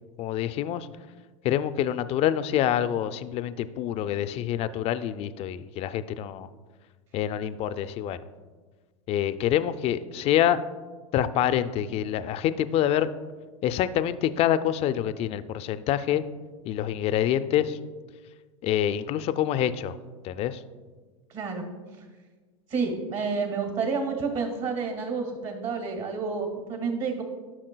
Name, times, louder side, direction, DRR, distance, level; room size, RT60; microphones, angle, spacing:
voice 1, 0.2-0.9 1.4-6.5 7.1-8.2 9.1-10.6 11.1-13.1 13.6-16.2 16.6-17.8 18.6-20.0 20.2-20.6, left 11 dB, 40° left, 13 dB, 0.4 m, -26 dB
voice 2, 21.3-21.6 22.7-27.2, right 5 dB, 45° right, 4 dB, 1.8 m, -29 dB
12.0 x 5.9 x 2.2 m, 1.4 s
hypercardioid pair, 100°, 16 cm